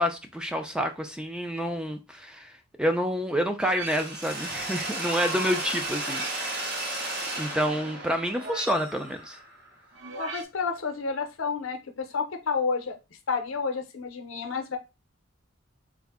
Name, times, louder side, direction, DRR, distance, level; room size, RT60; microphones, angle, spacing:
voice 1, 0.0-2.5 2.8-6.7 7.4-9.4, equal, 5° right, 0.3 m, -28 dB
sound 1, 3.6-4.4 5.8-6.6 8.2-9.1 9.9-10.4, right 3 dB, 85° right, 0.6 m, -40 dB
Mechanisms, 3.8-9.7, right 2 dB, 50° right, 1.6 m, -34 dB
voice 2, 10.2-13.0 13.3-14.8, left 5 dB, 80° left, 0.6 m, -30 dB
3.6 x 2.1 x 3.4 m
head